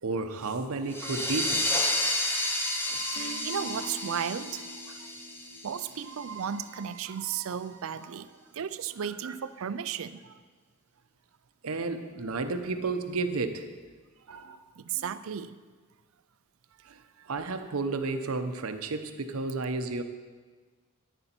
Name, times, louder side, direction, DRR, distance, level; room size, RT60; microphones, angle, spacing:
voice 1, 0.0-1.7 9.2-9.3 11.6-13.7 14.3-14.6 16.9-17.0 17.3-20.0, right 3 dB, 85° right, 8 dB, 0.8 m, -32 dB
sound 1, 0.9-6.2, left 1 dB, 10° left, 0.8 m, -31 dB
voice 2, 2.4-5.1 5.6-10.4 14.4-15.6 16.8-17.3, right 8 dB, 70° right, 14 dB, 0.4 m, -36 dB
Guitar, 3.1-7.1, right 1 dB, 85° left, 1.6 m, -46 dB
11.0 x 10.0 x 4.4 m, 1.5 s
head